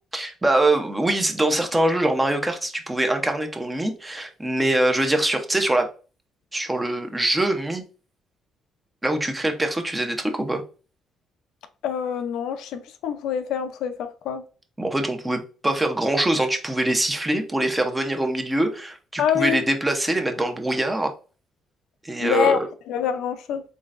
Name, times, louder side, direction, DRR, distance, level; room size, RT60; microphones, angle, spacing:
voice 1, 0.1-5.9 6.5-7.8 9.0-10.6 14.8-21.1 22.0-22.7, right 1 dB, 15° right, 0.8 m, -23 dB
voice 2, 11.8-14.4 19.2-19.6 22.2-23.6, left 8 dB, 85° left, 0.5 m, -25 dB
3.8 x 3.2 x 2.5 m
cardioid pair, 95°, 0 cm